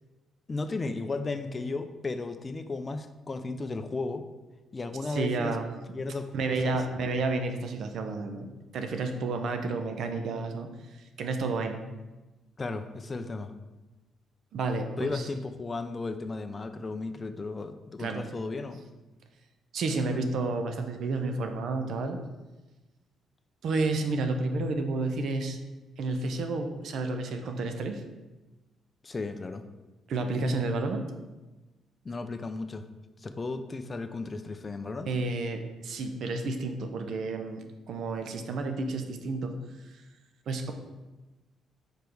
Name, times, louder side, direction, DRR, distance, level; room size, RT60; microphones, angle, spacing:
voice 1, 0.5-4.3 4.7-5.6 5.9-6.8 12.6-13.5 15.0-18.8 29.0-29.6 32.0-32.9 33.2-35.1, left 3 dB, 30° left, 9 dB, 0.5 m, -35 dB
voice 2, 5.1-5.7 6.3-11.8 14.5-15.3 18.0-18.2 19.7-22.2 23.6-25.6 26.0-28.0 30.1-31.1 35.1-39.6 40.5-40.7, right 3 dB, 70° right, 6 dB, 0.7 m, -31 dB
5.0 x 4.5 x 4.7 m, 1.1 s
cardioid pair, 90°, 0 cm